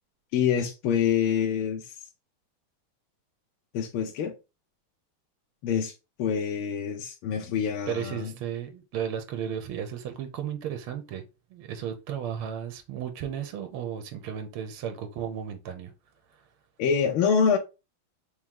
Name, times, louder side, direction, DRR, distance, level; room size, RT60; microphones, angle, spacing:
voice 1, 0.3-1.9 3.7-4.3 5.6-8.3 16.8-17.6, left 7 dB, 80° left, 1.6 m, -26 dB
voice 2, 7.9-11.2 11.5-15.9, right 9 dB, 80° right, 1.7 m, -34 dB
4.5 x 3.1 x 3.6 m
omnidirectional pair, 2.4 m